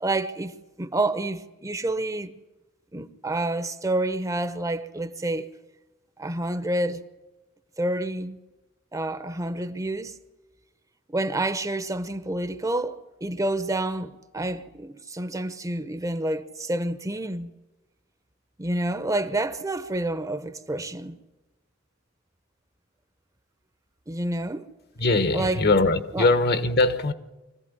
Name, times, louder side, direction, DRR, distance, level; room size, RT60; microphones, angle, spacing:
voice 1, 0.0-2.3 2.9-5.5 6.2-7.0 7.8-8.4 8.9-10.2 11.1-17.5 18.6-21.2 24.1-24.7 25.3-25.6 26.1-26.3, right 2 dB, 15° right, 0.9 m, -28 dB
voice 2, 25.0-27.1, left 2 dB, 55° left, 1.3 m, -21 dB
25.0 x 16.0 x 9.7 m
head